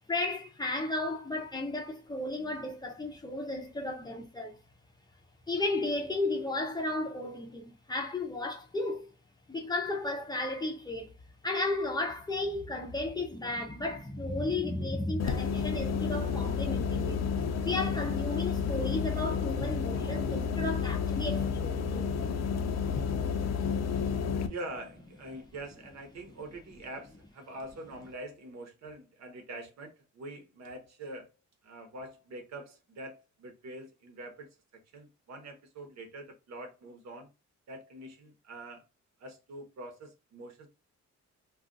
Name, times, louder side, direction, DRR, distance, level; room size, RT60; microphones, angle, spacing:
voice 1, 0.1-4.6 5.5-9.1 9.5-11.1 11.4-17.2 17.6-22.4, left 2 dB, 15° left, 0.6 m, -34 dB
sound 1, 15.2-24.5, left 6 dB, 60° left, 0.5 m, -31 dB
voice 2, 24.4-31.3 31.6-37.3 37.7-38.9 39.2-40.7, right 1 dB, 65° right, 1.0 m, -44 dB
2.4 x 2.4 x 3.8 m
cardioid pair, 140°, 29 cm